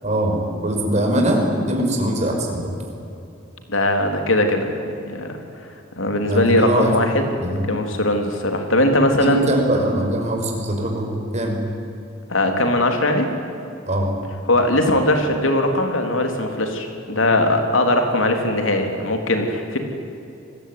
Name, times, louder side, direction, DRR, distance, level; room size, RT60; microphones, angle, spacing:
voice 1, 0.0-2.7 6.3-7.0 7.4-7.7 9.2-11.6 13.9-14.1, right 1 dB, 35° right, 2 dB, 5.5 m, -22 dB
voice 2, 3.7-5.4 6.0-7.3 7.7-9.5 12.3-13.3 14.4-19.8, left 1 dB, 70° left, 4 dB, 3.7 m, -20 dB
26.5 x 20.5 x 9.7 m, 2.8 s
head